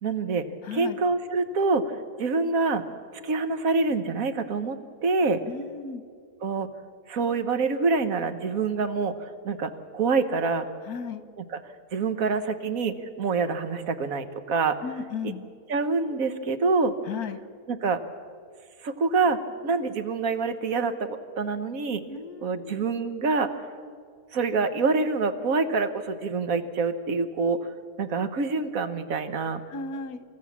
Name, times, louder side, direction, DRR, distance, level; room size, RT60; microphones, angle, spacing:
voice 1, 0.0-0.5 0.7-2.8 3.2-5.4 6.4-6.7 7.1-10.7 11.9-14.8 15.7-16.9 17.7-18.0 18.8-22.0 22.4-23.7 24.3-27.6 28.0-29.6, right 4 dB, 70° right, 9 dB, 1.5 m, -26 dB
voice 2, 0.6-1.0 5.5-6.0 10.8-11.2 14.8-15.4 17.1-17.4 22.1-22.8 29.7-30.2, left 5 dB, 85° left, 11 dB, 1.5 m, -35 dB
28.5 x 14.0 x 7.3 m, 2.2 s
omnidirectional pair, 1.6 m